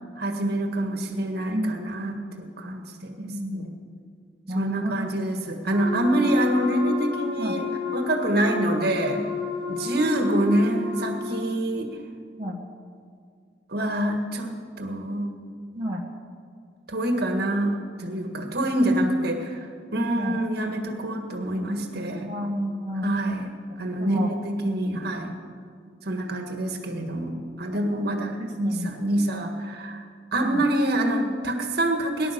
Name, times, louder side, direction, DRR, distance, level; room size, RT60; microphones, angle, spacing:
voice 1, 0.2-3.7 4.5-9.3 9.7-11.9 13.7-15.4 16.9-22.3 23.0-23.5 23.8-25.3 26.0-30.0 30.3-32.3, right 1 dB, 60° right, 4 dB, 1.8 m, -26 dB
voice 2, 1.5-1.9 2.3-2.4 3.1-3.8 4.5-5.1 7.4-7.6 12.4-12.6 15.7-16.1 19.0-19.1 20.1-20.4 22.1-23.1 23.7-24.3 27.9-28.0 28.4-29.1 30.4-30.6, equal, 30° right, -2 dB, 1.3 m, -31 dB
Wind instrument woodwind instrument, 5.7-11.5, left 4 dB, 5° right, 4.9 m, -31 dB
19.0 x 11.0 x 6.8 m, 2.2 s
head